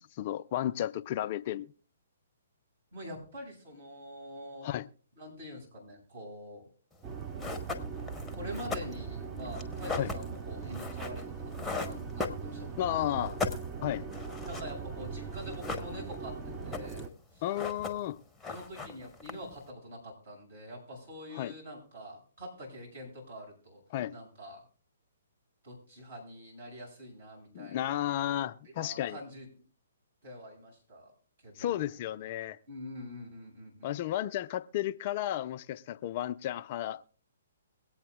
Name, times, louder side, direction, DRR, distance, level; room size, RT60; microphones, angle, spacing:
voice 1, 0.0-1.7 4.6-4.9 10.0-10.1 12.8-13.4 13.8-14.1 17.0-17.1 17.4-18.2 21.3-21.5 23.9-24.1 27.5-29.2 31.6-32.6 33.8-37.1, left 12 dB, 40° left, 0.4 m, -33 dB
voice 2, 2.9-4.7 5.2-6.7 8.3-13.3 14.4-16.4 16.6-17.4 18.5-23.8 24.1-24.6 25.6-28.0 28.6-29.5 30.2-31.1 31.4-31.9 32.7-33.9, equal, 65° right, 6.8 m, -45 dB
sound 1, 7.0-7.1 7.4-12.9 13.2-15.0 15.3-16.3 16.5-17.1 17.4-18.2 18.4-19.6, left 4 dB, 5° left, 0.9 m, -38 dB
sound 2, 7.0-17.1, right 5 dB, 20° right, 0.7 m, -40 dB
22.5 x 8.6 x 2.4 m
figure-of-eight pair, 125°, 0 cm